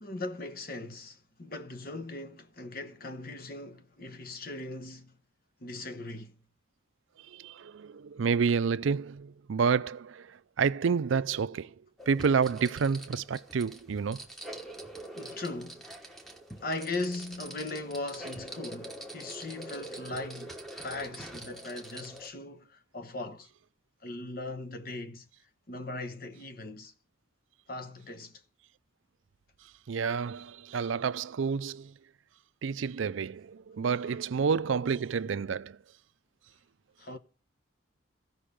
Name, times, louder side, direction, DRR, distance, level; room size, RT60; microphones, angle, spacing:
voice 1, 0.0-5.1 5.6-6.4 14.5-14.6 15.2-15.9 16.6-23.5 24.0-25.3 25.7-26.9 27.7-28.4 37.0-37.2, left 2 dB, 50° left, 1.0 m, -39 dB
voice 2, 7.3-10.3 10.6-11.7 12.1-14.2 29.9-31.9 32.6-35.8, right 6 dB, 90° right, 0.4 m, -29 dB
sound 1, 12.0-22.3, right 1 dB, ahead, 1.1 m, -44 dB
15.5 x 5.5 x 5.0 m
head